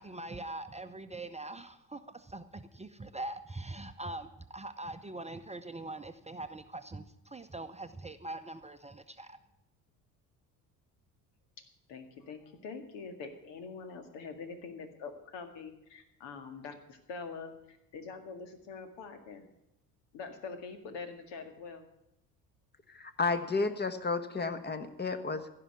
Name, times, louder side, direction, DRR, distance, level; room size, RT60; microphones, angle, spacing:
voice 1, 0.0-9.4, right 2 dB, 15° right, 8 dB, 0.8 m, -43 dB
voice 2, 11.9-19.5 20.1-21.9, left 4 dB, 65° left, 8 dB, 2.1 m, -44 dB
voice 3, 22.9-25.5, left 4 dB, 20° left, 11 dB, 1.4 m, -32 dB
16.0 x 5.9 x 9.6 m, 0.85 s
hypercardioid pair, 55°, 46 cm